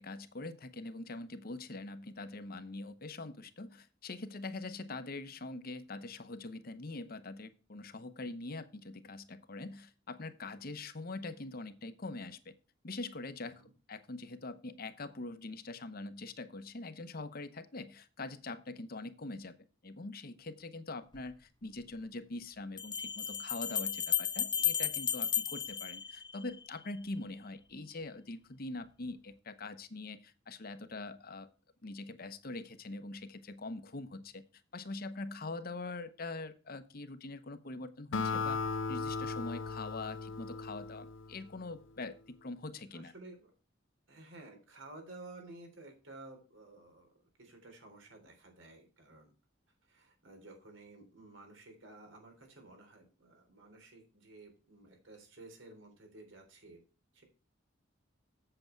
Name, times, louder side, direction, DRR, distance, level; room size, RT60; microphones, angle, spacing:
voice 1, 0.0-12.5 12.8-13.6 13.9-19.5 19.8-31.5 31.8-34.4 34.7-38.6 38.9-43.1, left 2 dB, 50° left, 11 dB, 0.9 m, -43 dB
voice 2, 13.4-13.7 42.9-43.5 44.1-47.1 47.4-49.3 49.8-56.8 57.1-57.2, right 2 dB, 90° right, 3 dB, 3.6 m, -53 dB
sound 1, 21.2-21.3 22.8-26.7, left 9 dB, 25° left, 0.5 m, -34 dB
Acoustic guitar, 38.1-41.7, left 4 dB, 85° left, 0.6 m, -37 dB
7.8 x 7.7 x 4.5 m, 0.34 s
head